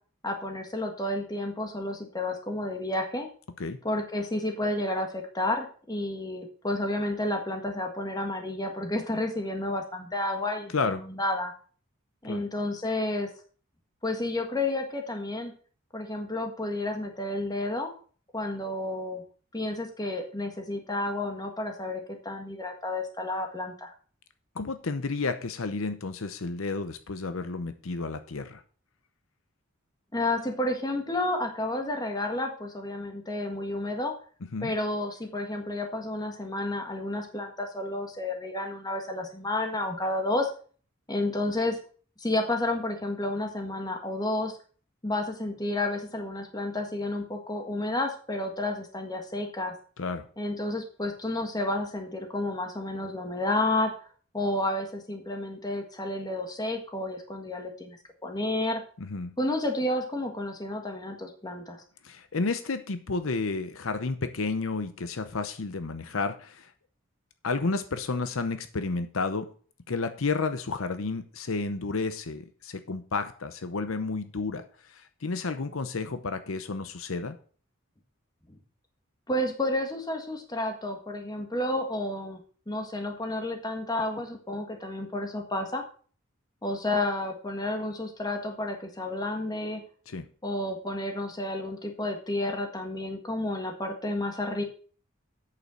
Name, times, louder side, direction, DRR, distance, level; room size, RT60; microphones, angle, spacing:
voice 1, 0.2-3.3 3.8-11.5 12.2-13.3 14.0-15.5 15.9-17.9 18.3-19.2 19.5-23.9 30.1-34.1 34.6-40.5 41.1-41.8 42.2-44.6 45.0-49.7 50.4-53.9 54.3-58.8 59.4-61.8 79.3-82.4 82.7-85.8 86.6-89.8 90.4-94.6, left 1 dB, 20° left, 4 dB, 1.6 m, -31 dB
voice 2, 24.5-28.6 34.5-34.7 50.0-50.3 59.0-59.4 62.0-66.7 67.4-69.5 69.9-77.4 90.1-90.3, left 3 dB, 75° left, 10 dB, 0.8 m, -31 dB
8.3 x 6.9 x 6.3 m, 0.43 s
head